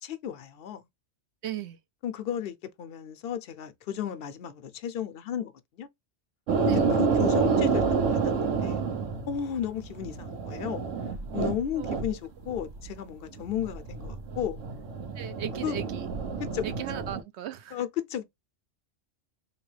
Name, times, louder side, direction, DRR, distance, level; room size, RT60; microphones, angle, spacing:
voice 1, 0.0-0.9 2.0-5.9 6.6-7.8 8.1-8.8 9.3-10.9 11.3-14.6 15.6-15.8 16.4-16.7 17.7-18.2, left 9 dB, 60° left, 0.7 m, -34 dB
voice 2, 1.4-1.8 6.6-6.9 7.4-7.8 11.7-12.2 15.2-16.1 16.6-17.8, right 11 dB, 70° right, 0.9 m, -37 dB
sound 1, 6.5-12.1 12.4-13.0 13.4-17.2, right 5 dB, 85° right, 1.2 m, -29 dB
3.5 x 3.0 x 3.2 m
omnidirectional pair, 1.3 m